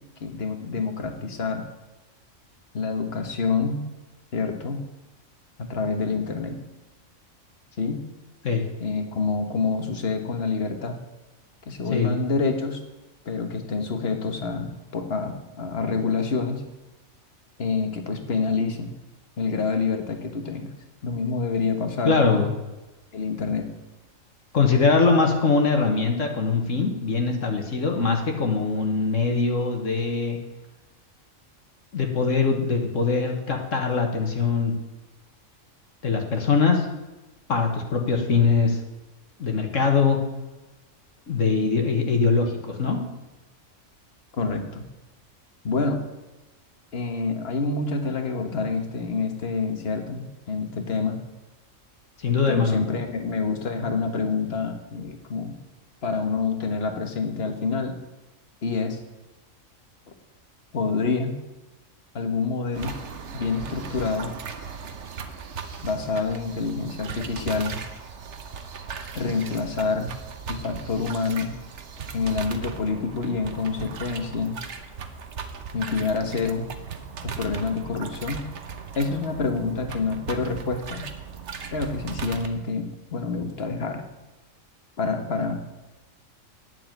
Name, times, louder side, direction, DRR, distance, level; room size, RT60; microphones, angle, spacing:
voice 1, 0.2-1.6 2.7-3.8 4.3-4.8 5.6-6.6 7.8-8.0 8.8-11.0 11.7-12.8 13.2-16.6 17.6-18.9 19.4-20.7 21.0-22.4 23.1-23.7 44.3-44.8 45.6-46.0 46.9-51.2 52.5-55.5 56.0-58.0 58.6-59.0 60.7-61.3 62.1-62.9 63.3-64.3 65.8-67.8 69.1-70.1 70.5-71.5 72.1-74.6 75.7-76.7 77.2-78.4 78.9-81.0 81.7-84.0 85.0-85.6, left 4 dB, 50° left, 5 dB, 1.6 m, -27 dB
voice 2, 22.1-22.5 24.5-30.4 31.9-34.7 36.0-36.9 37.5-38.8 39.4-40.2 41.3-43.0 52.2-52.8, left 4 dB, 65° left, 3 dB, 1.8 m, -22 dB
sound 1, 62.7-82.5, right 6 dB, 60° right, 1.2 m, -38 dB
9.3 x 7.1 x 8.8 m, 1.1 s
omnidirectional pair, 1.4 m